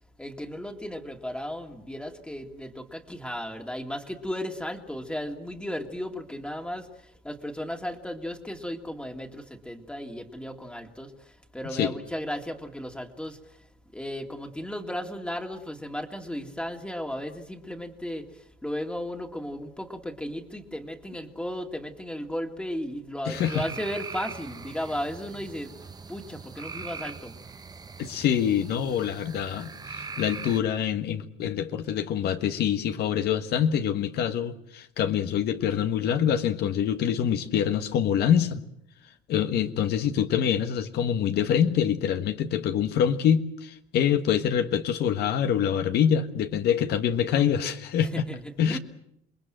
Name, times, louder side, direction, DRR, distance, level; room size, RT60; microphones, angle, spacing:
voice 1, 0.2-13.6 13.9-25.7 26.1-27.3 48.0-48.8, equal, 5° left, 2.2 m, -35 dB
voice 2, 23.2-23.6 28.0-38.6 39.3-48.3 48.6-48.8, left 9 dB, 75° left, 1.5 m, -25 dB
sound 1, 23.3-30.6, right 4 dB, 25° right, 1.0 m, -41 dB
27.5 x 20.5 x 7.7 m
cardioid pair, 110°, 17 cm